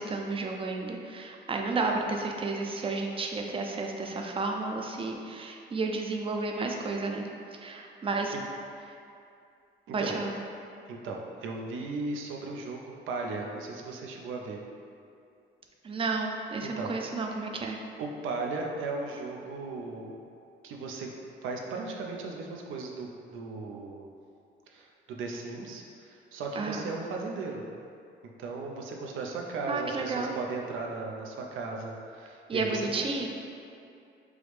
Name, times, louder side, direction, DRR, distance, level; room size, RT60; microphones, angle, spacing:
voice 1, 0.0-7.3 7.6-8.3 9.9-10.4 15.8-17.8 26.6-26.9 29.7-30.3 32.5-33.3, right 3 dB, 30° right, 2 dB, 0.4 m, -32 dB
voice 2, 9.9-10.2 10.9-14.6 16.6-16.9 18.0-20.2 20.6-21.1 21.4-24.1 24.7-27.6 28.4-32.9, right 3 dB, 85° right, 0 dB, 0.5 m, -36 dB
4.7 x 2.0 x 3.2 m, 2.6 s
cardioid pair, 90°, 20 cm